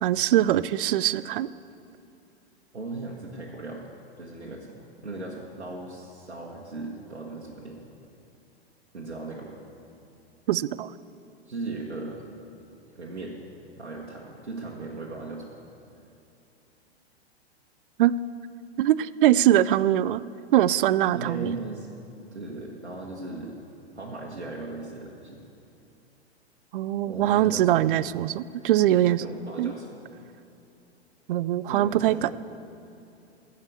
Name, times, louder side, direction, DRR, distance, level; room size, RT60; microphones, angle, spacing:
voice 1, 0.0-1.5 10.5-10.9 18.0-18.1 18.8-20.2 20.5-21.5 26.7-29.2 29.6-29.7 31.3-32.3, right 13 dB, 55° right, 18 dB, 0.4 m, -22 dB
voice 2, 2.7-3.9 4.2-7.8 8.9-9.5 11.5-12.2 12.9-13.4 13.8-15.6 21.1-21.9 22.3-23.6 23.9-25.4 27.0-27.9 29.0-30.0 31.7-32.3, right 3 dB, 85° right, -3 dB, 1.5 m, -37 dB
14.5 x 5.8 x 8.3 m, 2.7 s
figure-of-eight pair, 105°, 33 cm